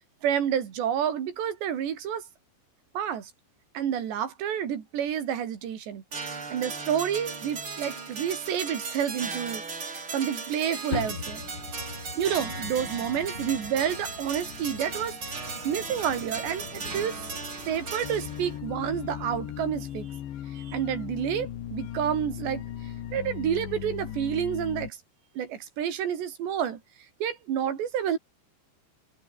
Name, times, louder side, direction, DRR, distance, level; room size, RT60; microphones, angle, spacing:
voice 1, 0.2-2.2 2.9-3.3 3.7-6.0 6.3-11.4 12.1-15.4 15.6-17.2 17.7-20.1 20.5-25.0 25.4-26.8 27.2-28.2, right 9 dB, 80° right, 5.1 m, -29 dB
sound 1, 6.1-18.6, right 4 dB, 30° right, 4.3 m, -37 dB
sound 2, 10.9-19.7, left 6 dB, 40° left, 1.8 m, -41 dB
sound 3, 18.0-24.9, left 11 dB, 85° left, 4.5 m, -37 dB
omnidirectional pair, 5.0 m